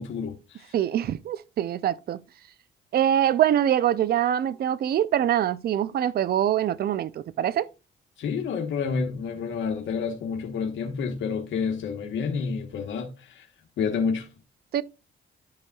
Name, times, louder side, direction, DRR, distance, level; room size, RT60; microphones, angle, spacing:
voice 1, 0.0-0.7 8.2-13.5 13.8-14.3, left 5 dB, 70° left, 1.1 m, -29 dB
voice 2, 0.7-2.2 2.9-7.7 14.7-14.8, right 10 dB, 50° right, 0.4 m, -24 dB
11.5 x 5.3 x 2.3 m
cardioid pair, 90°, 20 cm